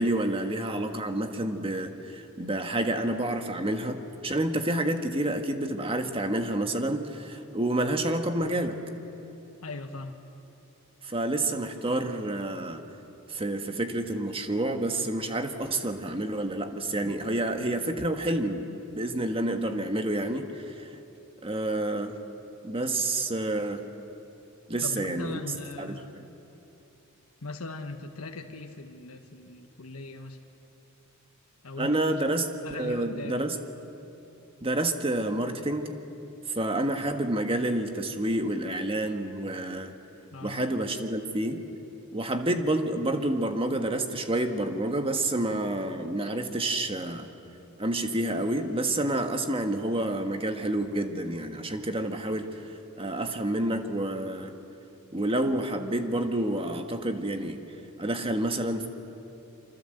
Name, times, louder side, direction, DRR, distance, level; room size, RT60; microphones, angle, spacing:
voice 1, 0.0-8.8 11.0-12.8 13.3-18.7 18.9-20.9 21.4-22.2 22.6-23.9 24.7-25.4 25.8-26.2 31.8-33.6 34.6-36.0 36.5-39.9 40.4-41.6 42.1-47.3 47.8-54.5 55.1-57.6 58.0-58.9, right 1 dB, 25° right, 6 dB, 1.5 m, -29 dB
voice 2, 9.6-10.2 24.8-26.1 27.4-30.4 31.6-32.2 32.6-33.5 40.3-40.6, left 2 dB, 80° left, 4 dB, 1.5 m, -39 dB
27.5 x 25.0 x 7.9 m, 2.9 s
head